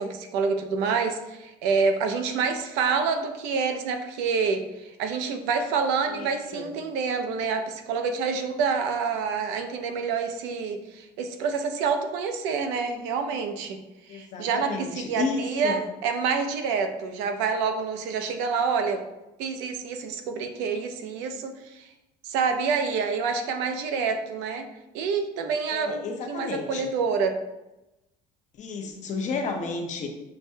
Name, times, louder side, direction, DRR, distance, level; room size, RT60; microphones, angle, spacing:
voice 1, 0.0-13.8 14.1-19.0 19.4-21.9 22.2-24.6 24.9-27.4, right 5 dB, 85° right, 6 dB, 0.6 m, -27 dB
voice 2, 6.1-6.7 14.1-15.8 25.7-26.9 28.6-30.1, left 4 dB, 45° left, 4 dB, 0.7 m, -32 dB
6.6 x 2.2 x 2.7 m, 0.97 s
cardioid pair, 130°, 18 cm